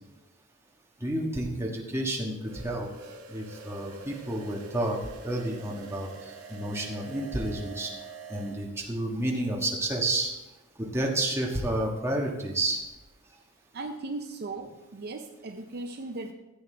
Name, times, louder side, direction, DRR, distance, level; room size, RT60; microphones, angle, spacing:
voice 1, 1.0-2.9 3.3-5.0 5.2-7.9 8.3-10.3 10.8-12.8, right 1 dB, 10° right, -2 dB, 1.4 m, -30 dB
sound 1, 2.4-8.6, right 4 dB, 80° right, 1.5 m, -46 dB
voice 2, 13.7-16.3, right 2 dB, 45° right, 5 dB, 0.6 m, -37 dB
15.0 x 8.3 x 3.4 m, 1.0 s
head